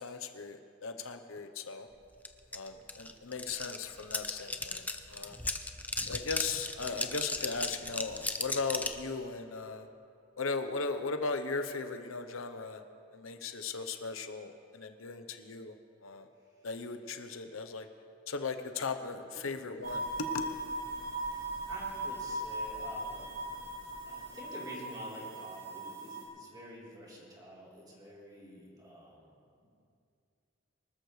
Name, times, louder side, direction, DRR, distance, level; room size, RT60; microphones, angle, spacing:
voice 1, 0.0-1.9 2.5-4.8 5.1-5.4 6.1-9.9 10.4-12.8 13.1-15.7 16.0-16.3 16.6-17.9 18.3-20.4, left 4 dB, 85° left, 7 dB, 0.9 m, -37 dB
sound 1, 2.2-2.3 2.5-9.0, left 2 dB, 10° left, 0.6 m, -36 dB
sound 2, 19.8-26.2, right 1 dB, 70° right, 3.7 m, -39 dB
voice 2, 21.7-23.4 24.0-29.3 29.6-29.7, equal, 20° right, -5 dB, 3.7 m, -49 dB
24.5 x 13.0 x 3.3 m, 2.5 s
head